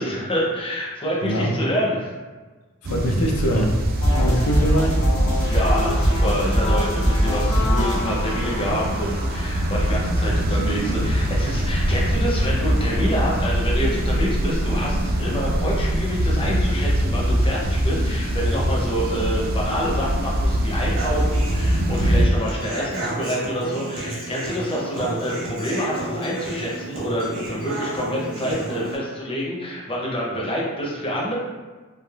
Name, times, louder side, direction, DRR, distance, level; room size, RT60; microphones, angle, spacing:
voice 1, 0.0-2.1 5.5-31.4, equal, 25° left, -4 dB, 0.6 m, -27 dB
voice 2, 1.2-1.6 2.8-3.8 4.2-5.0, equal, 80° left, 1 dB, 0.4 m, -23 dB
sound 1, 2.8-22.3, equal, 45° right, 0.3 m, -23 dB
sound 2, 4.0-10.0, equal, 65° left, 0.8 m, -22 dB
Human voice / Acoustic guitar, 21.0-29.0, right 2 dB, 65° right, 0.9 m, -31 dB
3.2 x 2.4 x 2.3 m, 1.3 s
head